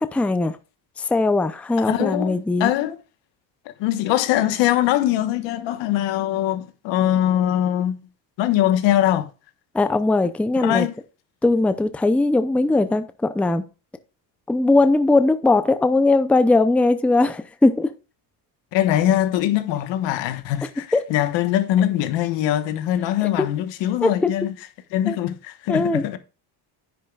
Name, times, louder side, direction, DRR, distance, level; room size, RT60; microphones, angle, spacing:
voice 1, 0.1-0.6 1.0-2.7 9.7-10.9 11.4-13.6 14.5-17.9 20.9-21.0 24.0-24.3 25.1-25.2 25.7-26.0, left 2 dB, 5° left, 0.5 m, -19 dB
voice 2, 1.9-3.0 3.8-8.0 8.4-9.3 10.6-10.9 18.7-24.5 24.9-26.2, left 12 dB, 80° left, 1.3 m, -22 dB
10.0 x 8.4 x 2.4 m
cardioid pair, 125°, 44 cm